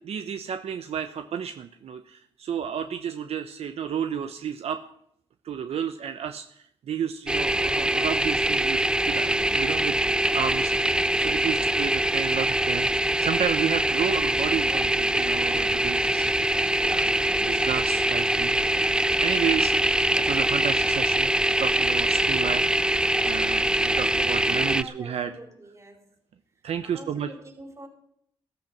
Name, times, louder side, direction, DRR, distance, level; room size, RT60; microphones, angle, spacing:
voice 1, 0.0-4.8 5.4-8.8 9.1-9.9 10.3-18.5 19.2-19.7 20.2-21.3 21.6-25.3 26.6-27.3, right 8 dB, 75° right, 9 dB, 0.9 m, -32 dB
sound 1, 7.3-24.8, right 1 dB, 10° right, 0.5 m, -23 dB
voice 2, 9.6-10.2 24.6-26.1 26.8-27.9, right 1 dB, 30° right, 2 dB, 5.1 m, -45 dB
14.0 x 13.5 x 5.9 m, 0.69 s
cardioid pair, 60°, 11 cm